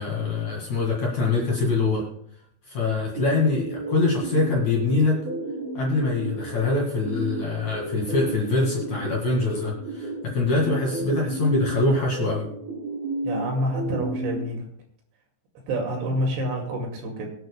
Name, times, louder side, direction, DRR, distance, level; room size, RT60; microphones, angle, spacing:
voice 1, 0.0-2.1 2.7-5.2 5.7-12.5, left 3 dB, 50° left, -2 dB, 2.6 m, -24 dB
sound 1, 3.1-14.4, right 2 dB, 85° right, 4.6 m, -33 dB
voice 2, 13.2-14.6 15.7-17.3, right 1 dB, 65° right, 1 dB, 4.1 m, -27 dB
24.0 x 9.2 x 2.2 m, 0.66 s
omnidirectional pair, 5.5 m